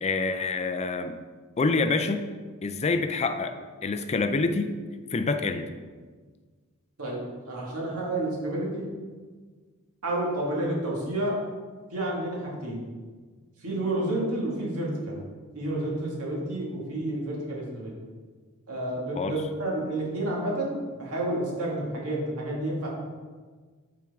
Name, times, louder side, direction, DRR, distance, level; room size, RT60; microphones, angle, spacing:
voice 1, 0.0-1.2 1.6-2.3 2.6-3.6 3.8-4.7 5.1-5.7 19.2-19.4, left 3 dB, 30° left, 8 dB, 0.4 m, -26 dB
voice 2, 7.5-8.9 10.0-11.4 11.9-12.8 13.6-15.2 15.5-17.9 18.7-22.9, right 1 dB, 90° right, -3 dB, 1.9 m, -30 dB
8.6 x 4.6 x 3.5 m, 1.5 s
head